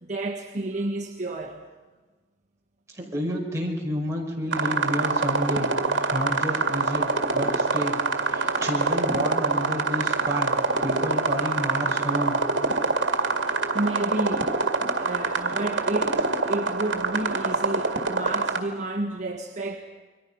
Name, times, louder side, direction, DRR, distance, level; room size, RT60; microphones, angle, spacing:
voice 1, 0.0-1.7 6.1-6.2 8.1-8.3 13.3-14.5 14.8-19.8, right 2 dB, 40° right, 1 dB, 1.5 m, -31 dB
voice 2, 3.0-5.7 6.1-7.1 7.3-8.0 8.2-10.6 10.8-12.4, equal, 15° right, -3 dB, 5.5 m, -29 dB
sound 1, 4.5-18.6, right 3 dB, 75° right, 2.0 m, -25 dB
29.5 x 23.5 x 5.6 m, 1.3 s
head